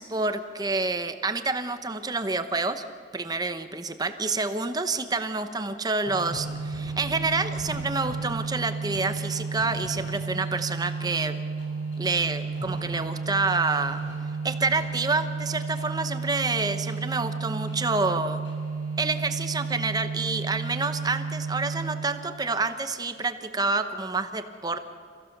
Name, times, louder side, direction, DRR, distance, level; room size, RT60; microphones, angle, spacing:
voice 1, 0.0-2.8 3.1-11.4 12.0-14.0 14.4-18.4 19.0-24.8, right 3 dB, 20° right, 9 dB, 0.8 m, -28 dB
sound 1, 6.1-22.2, right 4 dB, 80° left, 7.3 m, -32 dB
28.0 x 15.5 x 6.7 m, 2.4 s
head